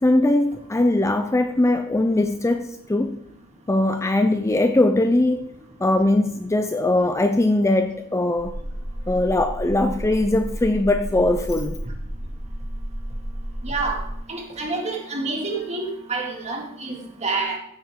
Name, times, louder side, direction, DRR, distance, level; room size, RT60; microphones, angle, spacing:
voice 1, 0.0-3.2 3.7-5.5 5.8-8.6 9.1-11.8, left 2 dB, 15° left, 8 dB, 0.5 m, -20 dB
sound 1, 8.4-14.2, equal, 80° right, 2.6 m, -32 dB
voice 2, 13.6-14.0 14.3-17.6, right 3 dB, 30° right, 2 dB, 2.2 m, -28 dB
15.0 x 8.8 x 3.7 m, 0.75 s
head